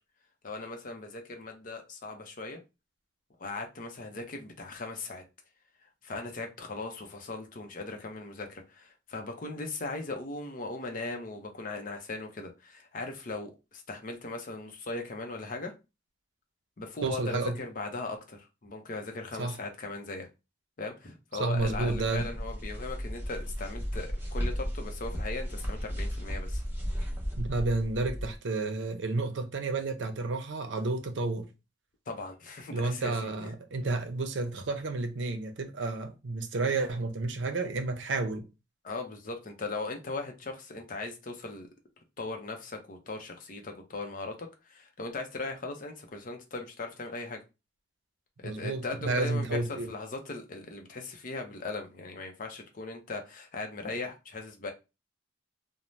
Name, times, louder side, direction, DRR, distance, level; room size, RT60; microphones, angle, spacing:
voice 1, 0.4-2.6 3.4-5.2 6.0-15.7 16.8-20.3 20.8-26.6 32.1-33.5 38.8-41.7 42.2-47.4 48.4-49.6 49.9-54.7, left 3 dB, 45° left, 0.6 m, -38 dB
voice 2, 17.0-17.6 19.4-19.6 21.4-22.3 27.4-31.5 32.7-38.5 48.4-49.9, right 3 dB, 80° right, 0.6 m, -31 dB
sound 1, 21.6-28.4, equal, 10° right, 0.7 m, -35 dB
2.6 x 2.0 x 3.1 m
head